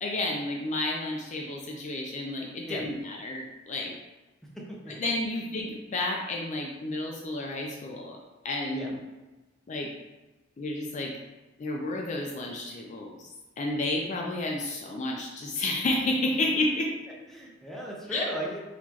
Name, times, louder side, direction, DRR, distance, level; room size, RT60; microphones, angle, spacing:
voice 1, 0.0-3.9 5.0-8.2 8.4-9.0 9.7-9.9 10.6-11.1 11.6-13.1 13.6-16.9 18.1-18.2, left 2 dB, 40° left, -1 dB, 0.4 m, -31 dB
voice 2, 4.5-4.9 8.7-8.9 17.3-18.6, right 1 dB, ahead, -3 dB, 0.7 m, -36 dB
4.0 x 2.9 x 2.9 m, 1.1 s
head